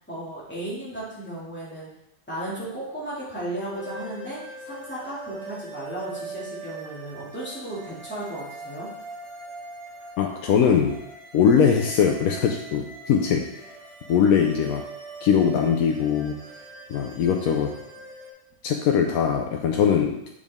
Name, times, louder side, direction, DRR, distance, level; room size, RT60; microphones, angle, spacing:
voice 1, 0.1-1.9 2.3-4.4 4.6-8.9, right 1 dB, 5° left, -8 dB, 2.4 m, -35 dB
sound 1, 3.7-18.3, right 2 dB, 90° right, 2.3 m, -41 dB
voice 2, 10.2-11.0 11.3-13.5 14.1-14.8 15.2-16.4 16.9-17.7 18.6-20.2, left 7 dB, 85° left, 2 dB, 1.1 m, -21 dB
7.3 x 5.0 x 3.5 m, 0.83 s
omnidirectional pair, 1.5 m